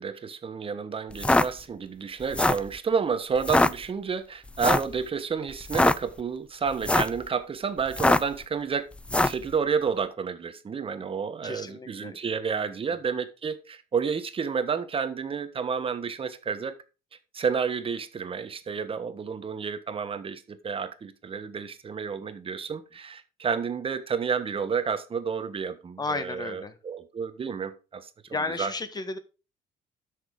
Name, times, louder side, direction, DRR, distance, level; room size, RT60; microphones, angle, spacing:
voice 1, 0.0-8.8 9.2-16.8 17.3-28.1 28.6-28.7, right 6 dB, 35° right, 1.2 m, -30 dB
sound 1, 1.1-1.5 2.2-2.7 3.4-3.7 4.6-4.9 5.6-6.0 6.7-7.2 7.9-8.4 9.1-9.4, left 2 dB, 5° left, 0.3 m, -22 dB
voice 2, 11.4-12.2 12.5-12.7 26.0-26.8 28.3-29.2, left 3 dB, 25° left, 1.4 m, -33 dB
8.2 x 6.4 x 5.1 m
cardioid pair, 110°, 17 cm